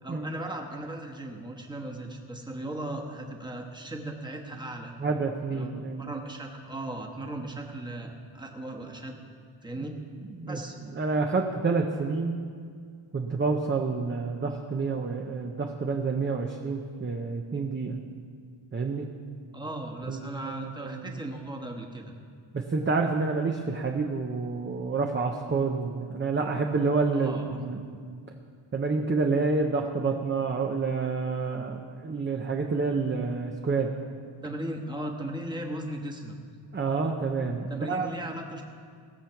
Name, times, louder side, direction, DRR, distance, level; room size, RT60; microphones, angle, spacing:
voice 1, 0.0-5.0 5.5-5.7 6.0-9.2 9.6-9.9 10.5-10.8 19.5-22.1 27.1-27.6 34.4-36.4 37.7-38.6, right 1 dB, 10° right, 0 dB, 1.1 m, -37 dB
voice 2, 5.0-6.1 9.8-9.9 10.3-10.6 11.0-12.4 13.1-18.0 18.7-19.1 20.1-20.6 20.8-21.2 22.5-28.0 28.7-33.9 36.7-38.1, right 4 dB, 25° right, 2 dB, 0.6 m, -28 dB
19.0 x 7.4 x 5.8 m, 2.1 s
wide cardioid pair, 180°, 48 cm